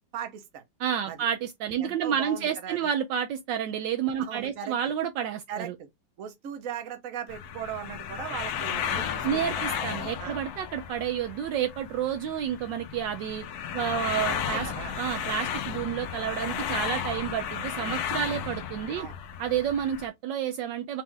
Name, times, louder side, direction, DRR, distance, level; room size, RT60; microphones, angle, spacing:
voice 1, 0.1-0.6 1.1-1.2 1.8-2.9 4.2-4.7 5.5-5.9 6.2-9.6 10.2-10.4 14.3-15.0 19.0-19.2, right 9 dB, 55° right, 1.1 m, -38 dB
voice 2, 0.8-5.7 9.2-13.4 13.7-14.7 15.0-19.1 19.4-21.0, right 9 dB, 75° right, 1.2 m, -30 dB
sound 1, 7.3-20.1, left 8 dB, 65° left, 1.0 m, -34 dB
4.4 x 2.5 x 3.7 m
omnidirectional pair, 2.1 m